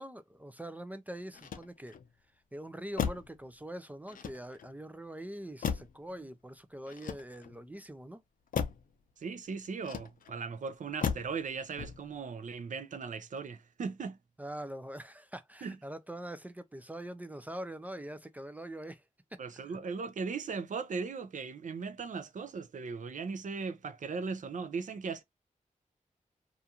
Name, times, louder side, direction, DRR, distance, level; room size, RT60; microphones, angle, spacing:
voice 1, 0.0-1.9 2.5-8.2 14.4-19.0 19.5-19.8, right 1 dB, 10° right, 0.3 m, -43 dB
Motor vehicle (road), 1.3-2.1 2.9-3.4 4.1-4.8 5.6-6.1 6.9-7.6 8.5-8.9 9.8-10.4 11.0-11.4 11.8-12.2, left 7 dB, 85° left, 0.5 m, -36 dB
voice 2, 9.2-14.2 15.6-15.8 19.4-25.2, right 5 dB, 65° right, 0.5 m, -38 dB
2.5 x 2.3 x 2.8 m
wide cardioid pair, 100°, 14 cm